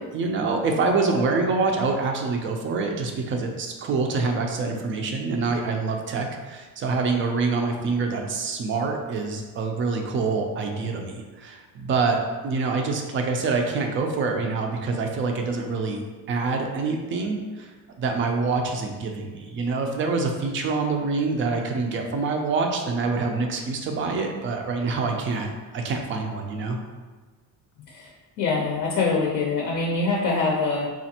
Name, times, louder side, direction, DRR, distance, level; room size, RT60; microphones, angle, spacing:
voice 1, 0.0-12.2 12.4-16.0 16.3-17.7 18.0-26.8, right 4 dB, 35° right, 3 dB, 0.4 m, -26 dB
voice 2, 28.4-30.9, left 3 dB, 55° left, -1 dB, 0.6 m, -24 dB
4.2 x 2.4 x 2.8 m, 1.4 s
cardioid pair, 155°, 37 cm